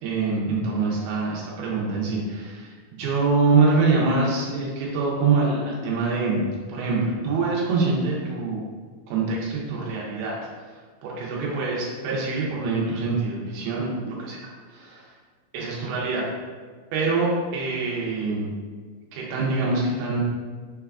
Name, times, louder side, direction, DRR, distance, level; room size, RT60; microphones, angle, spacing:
voice 1, 0.0-6.4 6.7-8.6 9.1-10.4 11.0-15.1 15.5-16.3 16.9-18.4 19.1-20.2, right 4 dB, 90° right, -4 dB, 2.8 m, -25 dB
6.2 x 2.3 x 3.4 m, 1.5 s
omnidirectional pair, 4.4 m